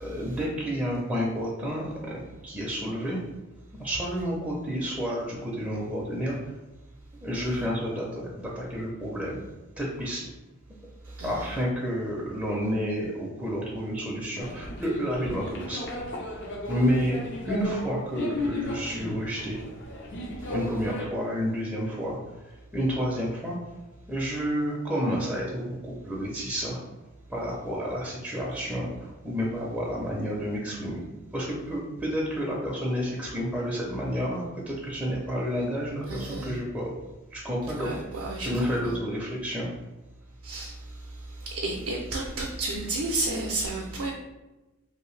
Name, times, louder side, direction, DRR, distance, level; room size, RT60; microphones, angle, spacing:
voice 1, 0.0-3.2 3.7-6.4 7.2-9.4 9.8-10.2 11.2-15.9 16.7-17.2 17.4-19.6 20.5-22.2 22.7-23.6 24.1-26.8 27.3-31.0 31.3-36.9 37.3-37.9 38.4-39.7, equal, 5° right, -5 dB, 0.5 m, -30 dB
voice 2, 11.2-11.6 28.5-28.6 36.1-36.5 37.8-38.9 40.4-40.7 41.4-44.1, right 2 dB, 60° right, -1 dB, 0.4 m, -32 dB
sound 1, 14.4-21.0, left 1 dB, 55° left, 0.5 m, -35 dB
2.7 x 2.5 x 3.1 m, 1.1 s
head